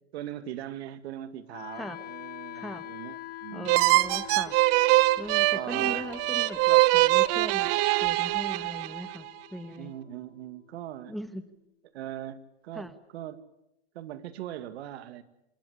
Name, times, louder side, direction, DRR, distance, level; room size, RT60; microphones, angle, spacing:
voice 1, 0.1-3.8 5.5-6.1 9.8-11.2 11.9-13.4 13.9-15.2, right 12 dB, 70° right, 12 dB, 2.1 m, -40 dB
Wind instrument woodwind instrument, 1.5-11.5, left 15 dB, 30° left, 1.3 m, -45 dB
voice 2, 2.5-2.8 3.5-4.5 5.2-7.7 8.0-9.3 9.5-9.9 11.1-11.4 12.7-12.9, equal, ahead, 11 dB, 1.3 m, -39 dB
sound 1, 3.7-9.2, right 20 dB, 45° right, 0.9 m, -23 dB
27.0 x 19.0 x 9.9 m, 0.86 s
hypercardioid pair, 130°, 34 cm